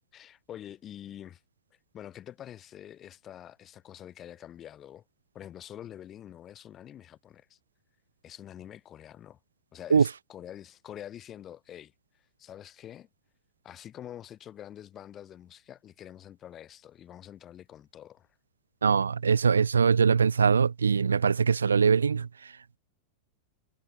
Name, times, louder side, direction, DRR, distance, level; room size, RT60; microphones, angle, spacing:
voice 1, 0.1-1.4 1.9-5.0 5.3-7.6 8.2-9.4 9.7-11.9 12.4-13.1 13.6-18.3, left 11 dB, 30° left, 4.9 m, -46 dB
voice 2, 18.8-22.5, right 6 dB, 70° right, 0.9 m, -22 dB
figure-of-eight pair, 90°, 0 cm